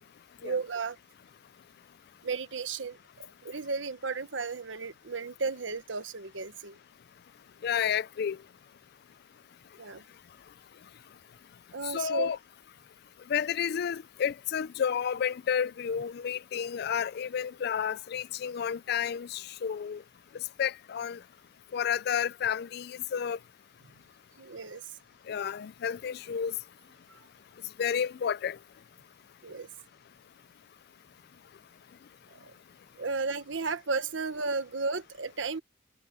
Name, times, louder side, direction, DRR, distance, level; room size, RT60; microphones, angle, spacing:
voice 1, 0.4-1.0 2.2-6.8 9.8-10.0 11.7-12.3 24.4-24.9 27.1-27.3 29.4-29.7 32.3-32.5 33.0-35.6, right 4 dB, 85° right, 1.2 m, -34 dB
voice 2, 7.6-8.4 11.8-12.4 13.3-20.0 20.6-21.2 21.7-23.4 25.3-26.5 27.8-28.6, left 8 dB, 55° left, 0.4 m, -31 dB
head